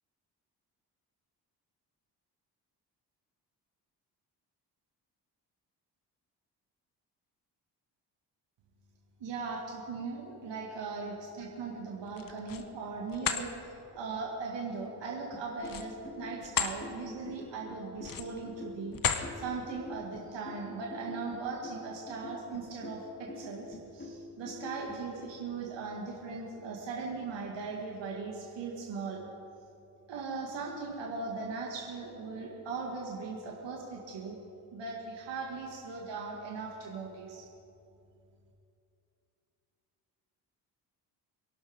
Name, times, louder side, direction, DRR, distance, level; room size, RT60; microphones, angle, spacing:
voice 1, 9.2-19.0 19.4-29.2 30.1-34.4 34.7-37.5, right 4 dB, 60° right, -1 dB, 2.1 m, -39 dB
sound 1, 12.1-12.7 13.1-13.5 15.6-16.8 17.2-17.4 18.0-18.4 18.9-19.3, left 7 dB, 40° left, 1.2 m, -33 dB
sound 2, 15.3-25.3, left 2 dB, 25° left, 2.9 m, -46 dB
23.5 x 12.0 x 3.7 m, 2.6 s
hypercardioid pair, 40°, 50 cm